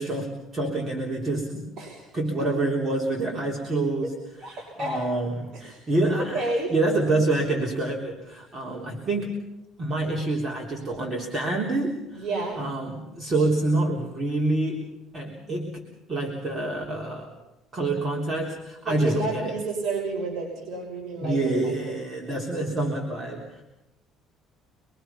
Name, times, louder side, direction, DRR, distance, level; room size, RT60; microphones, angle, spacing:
voice 1, 0.0-1.7 2.1-4.1 4.5-9.5 9.8-12.3 12.6-15.8 16.1-17.3 17.7-19.6 21.2-23.6, right 2 dB, 25° right, -2 dB, 3.6 m, -27 dB
voice 2, 4.4-5.0 5.5-5.8 6.2-6.7 12.1-12.6 18.8-22.0, right 2 dB, 45° right, -2 dB, 6.0 m, -30 dB
26.5 x 23.5 x 5.8 m, 0.94 s
cardioid pair, 155°, 0 cm